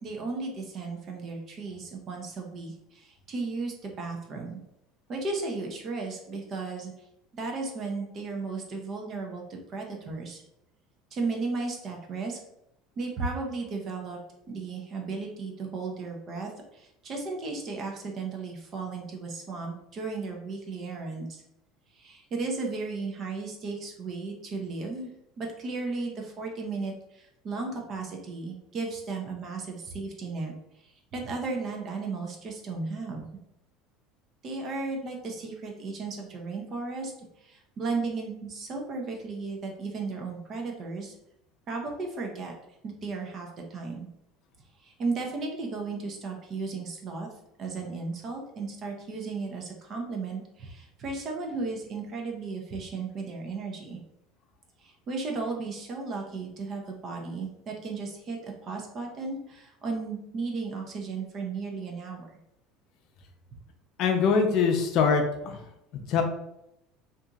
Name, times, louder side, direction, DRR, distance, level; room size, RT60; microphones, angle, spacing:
voice 1, 0.0-4.6 5.1-6.9 7.3-10.4 11.1-12.4 13.0-14.2 14.5-21.4 21.9-25.1 25.4-30.5 30.8-33.2 34.4-37.1 37.4-41.1 41.7-42.5 42.8-44.1 44.8-47.3 47.6-54.0 54.8-62.3, right 3 dB, 40° right, 1 dB, 0.6 m, -35 dB
voice 2, 64.0-65.6 65.9-66.2, left 5 dB, 55° left, 4 dB, 0.5 m, -23 dB
2.8 x 2.5 x 2.3 m, 0.82 s
supercardioid pair, 130°, 0 cm